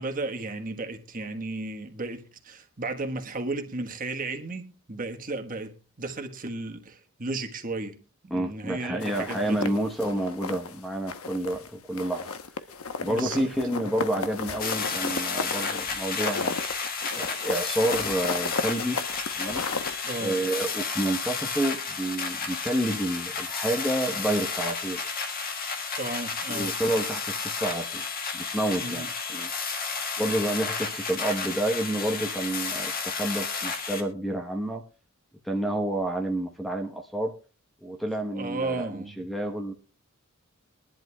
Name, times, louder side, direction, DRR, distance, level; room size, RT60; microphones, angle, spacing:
voice 1, 0.0-9.7 13.1-13.9 20.0-20.4 26.0-26.7 28.8-29.1 38.3-39.3, right 2 dB, 40° right, 1.4 m, -34 dB
voice 2, 8.3-12.3 13.0-16.6 17.1-19.0 19.3-19.7 20.2-25.0 26.5-28.0 28.3-29.5 30.2-34.8 35.4-37.3 37.8-39.7, right 1 dB, ahead, 1.0 m, -29 dB
sound 1, 9.0-10.7 11.1-11.7 12.0-19.9, left 4 dB, 85° left, 1.0 m, -34 dB
sound 2, 14.6-34.0, left 5 dB, 45° left, 1.7 m, -32 dB
22.5 x 11.0 x 2.3 m
head